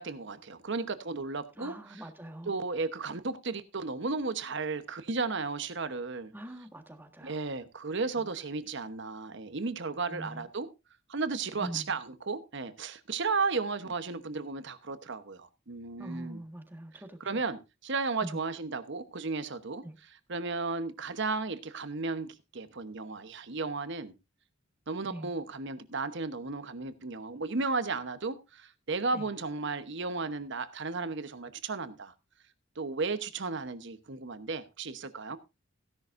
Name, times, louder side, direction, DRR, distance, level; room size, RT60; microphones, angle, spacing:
voice 1, 0.0-2.0 2.5-6.3 7.2-10.7 11.1-16.4 17.2-19.8 20.3-24.1 24.9-32.1 32.8-35.4, right 4 dB, 65° right, 1.1 m, -34 dB
voice 2, 1.6-2.6 6.3-7.4 8.2-8.3 10.1-10.5 11.6-11.9 16.0-17.4 18.2-18.4 19.8-19.9 25.1-25.3 29.1-29.3, right 1 dB, 10° right, 1.6 m, -43 dB
16.0 x 10.5 x 2.6 m
head